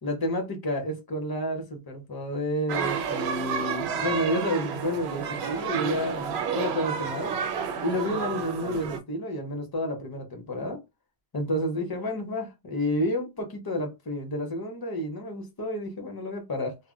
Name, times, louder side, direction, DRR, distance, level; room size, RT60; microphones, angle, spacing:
voice 1, 0.0-7.4 7.8-10.8 11.3-16.8, equal, 25° left, 0.6 m, -30 dB
sound 1, 2.7-9.0, right 6 dB, 80° right, 0.8 m, -30 dB
2.1 x 2.0 x 3.6 m
omnidirectional pair, 1.0 m